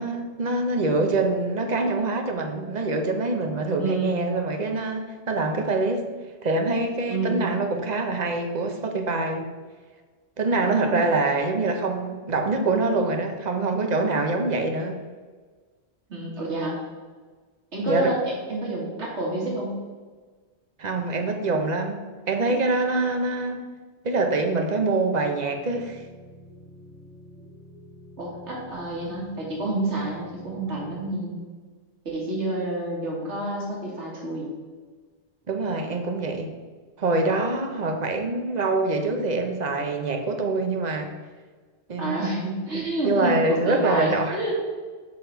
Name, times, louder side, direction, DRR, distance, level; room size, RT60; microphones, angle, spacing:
voice 1, 0.0-6.1 6.4-9.5 10.4-15.0 17.9-18.1 20.8-23.6 24.0-26.0 35.5-36.5 37.0-41.1 41.9-42.2 42.7-44.4, right 3 dB, 45° right, 5 dB, 0.8 m, -25 dB
voice 2, 3.8-4.2 7.1-7.4 10.6-11.1 16.1-16.8 17.7-19.8 28.2-31.4 32.1-34.5 42.0-44.6, right 1 dB, 85° right, -3 dB, 2.0 m, -29 dB
sound 1, 25.5-31.1, equal, 65° right, 2.0 m, -48 dB
6.7 x 4.0 x 5.6 m, 1.4 s
omnidirectional pair, 1.1 m